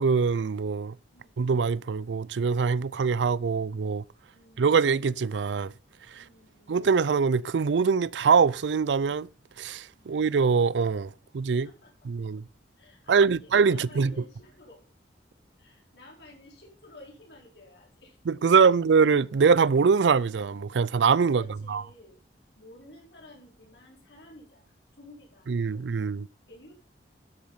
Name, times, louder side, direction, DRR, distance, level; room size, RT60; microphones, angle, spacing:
voice 1, 0.0-0.9 1.4-4.0 4.6-5.7 6.2-6.3 6.7-9.3 9.6-11.7 12.1-12.4 13.1-14.1 18.3-21.4 21.7-21.8 25.5-26.3, right 5 dB, 80° right, 0.4 m, -23 dB
voice 2, 1.1-1.5 4.3-4.8 6.1-6.7 9.9-10.2 11.2-11.3 11.6-12.3 12.8-14.8 15.6-18.2 18.7-18.8 21.2-22.2 22.5-25.8 26.5-26.7, left 1 dB, 65° left, 4.2 m, -52 dB
12.5 x 7.2 x 5.5 m
head